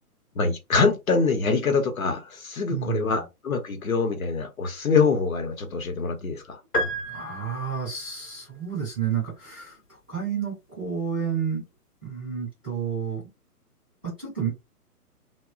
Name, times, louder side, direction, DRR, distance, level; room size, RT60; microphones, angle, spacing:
voice 1, 0.4-6.6, left 4 dB, 65° left, 0.8 m, -24 dB
voice 2, 2.7-3.2 7.0-11.6 12.0-13.2 14.0-14.5, right 7 dB, 10° right, 0.5 m, -30 dB
sound 1, 6.7-8.1, equal, 90° left, 0.9 m, -30 dB
2.9 x 2.0 x 2.4 m
figure-of-eight pair, 125°, 46 cm